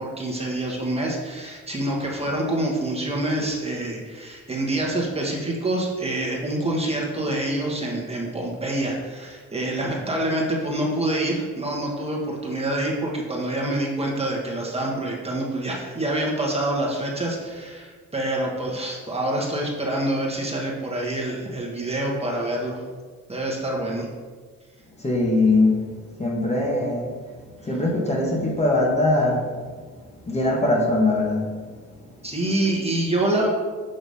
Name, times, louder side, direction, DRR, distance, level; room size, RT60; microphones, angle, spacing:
voice 1, 0.0-22.8 23.3-24.1 27.6-27.8 32.2-33.5, right 1 dB, 20° right, -2 dB, 1.2 m, -26 dB
voice 2, 25.0-25.8 26.2-27.1 27.7-29.4 30.3-31.5, left 2 dB, 20° left, -2 dB, 1.2 m, -21 dB
6.4 x 2.9 x 5.4 m, 1.5 s
cardioid pair, 90°, 30 cm